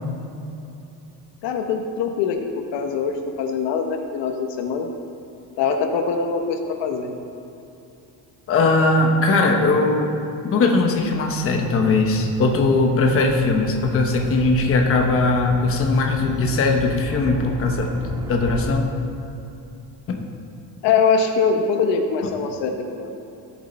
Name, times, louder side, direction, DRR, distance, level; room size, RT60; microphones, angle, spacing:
voice 1, 1.4-2.5 2.7-4.9 5.6-7.1 20.8-23.1, left 5 dB, 75° left, 4 dB, 1.3 m, -23 dB
voice 2, 8.5-10.1 10.4-18.0 18.3-18.9 20.1-20.2, left 3 dB, 30° left, 2 dB, 1.0 m, -19 dB
sound 1, 10.8-18.7, right 2 dB, 10° right, 0.5 m, -35 dB
17.0 x 7.4 x 4.4 m, 2.8 s
cardioid pair, 180°, 43 cm